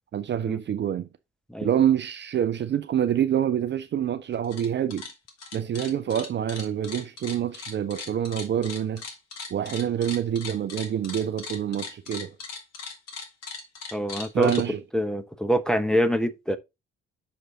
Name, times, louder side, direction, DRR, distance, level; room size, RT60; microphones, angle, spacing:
voice 1, 0.1-1.1 1.6-5.0 5.5-9.0 9.5-12.3 14.3-14.8, right 9 dB, 35° right, 0.6 m, -26 dB
sound 1, 4.3-4.7 4.9-14.6, left 5 dB, 50° left, 1.8 m, -38 dB
voice 2, 13.9-14.5 14.9-16.6, equal, ahead, 0.8 m, -25 dB
6.1 x 5.2 x 3.7 m
figure-of-eight pair, 45°, 32 cm